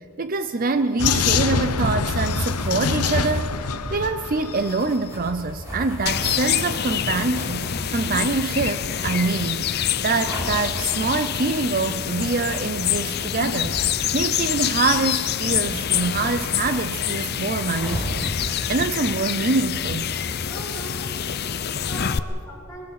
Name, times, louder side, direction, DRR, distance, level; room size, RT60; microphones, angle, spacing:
voice 1, 0.2-20.1, right 3 dB, 40° right, 11 dB, 0.5 m, -25 dB
Vehicle, 1.0-4.9, left 5 dB, 90° left, 0.8 m, -24 dB
sound 1, 2.1-21.7, equal, 15° right, 4.1 m, -37 dB
sound 2, 6.1-22.2, left 9 dB, 45° left, 0.6 m, -26 dB
voice 2, 20.4-22.8, right 1 dB, 15° left, -6 dB, 4.8 m, -39 dB
23.0 x 21.0 x 5.8 m, 2.7 s
head